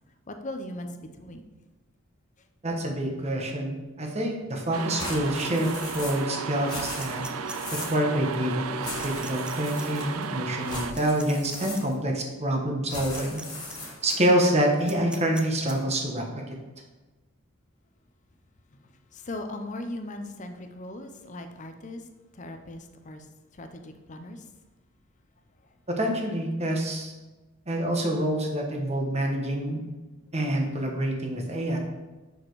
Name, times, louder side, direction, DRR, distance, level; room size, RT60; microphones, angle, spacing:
voice 1, 0.3-1.4 18.7-22.1 22.3-24.5 25.6-25.7, left 1 dB, 35° left, 6 dB, 0.7 m, -39 dB
voice 2, 2.6-13.4 14.0-16.6 26.0-27.1 27.7-29.8 30.3-31.8, right 1 dB, 30° right, 1 dB, 1.2 m, -27 dB
sound 1, 4.7-10.9, right 6 dB, 85° right, 0.5 m, -34 dB
sound 2, 5.0-6.3 6.6-8.0 8.8-10.2 10.6-12.1 12.9-14.3, left 2 dB, 20° left, 1.7 m, -39 dB
sound 3, 7.0-7.9 9.0-9.5 9.8-9.9 10.9-11.8 12.9-13.4 13.7-13.8 14.8-15.7, right 2 dB, 5° right, 0.4 m, -41 dB
6.6 x 5.0 x 4.7 m, 1.2 s
head